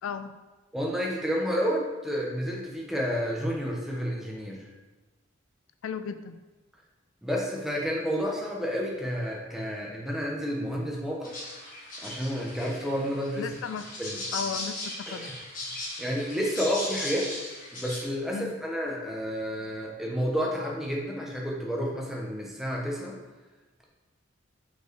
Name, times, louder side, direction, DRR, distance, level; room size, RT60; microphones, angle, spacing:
voice 1, 0.0-0.3 5.8-6.4 13.4-13.9 14.3-15.3 18.3-18.6, left 6 dB, 80° left, 11 dB, 0.4 m, -35 dB
voice 2, 0.7-4.6 7.2-11.3 12.0-13.5 14.0-14.2 15.2-15.3 16.0-17.3 17.7-23.2, equal, ahead, -2 dB, 0.9 m, -30 dB
sound 1, 11.2-18.1, left 1 dB, 40° left, 1.7 m, -38 dB
5.4 x 4.6 x 4.6 m, 1.2 s
head